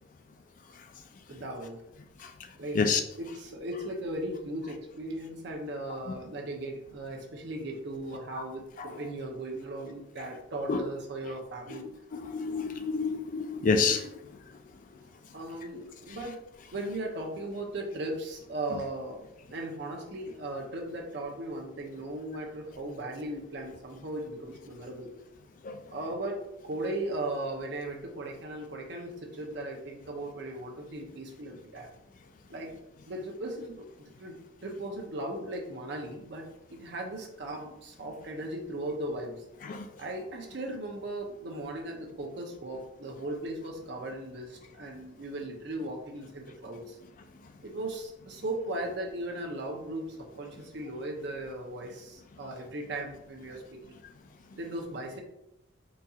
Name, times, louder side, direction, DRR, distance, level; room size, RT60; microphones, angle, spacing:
voice 1, 1.3-1.8 2.6-2.8 3.2-11.9 15.3-16.4 16.7-19.2 19.5-25.1 25.9-31.9 32.5-32.7 33.1-34.4 34.6-39.4 40.0-47.0 47.6-54.0 54.6-55.2, right 1 dB, 60° right, 1 dB, 0.6 m, -37 dB
voice 2, 12.1-14.1 25.6-25.8 39.6-39.9, left 4 dB, 45° left, 7 dB, 0.3 m, -28 dB
4.0 x 2.6 x 2.3 m, 0.85 s
head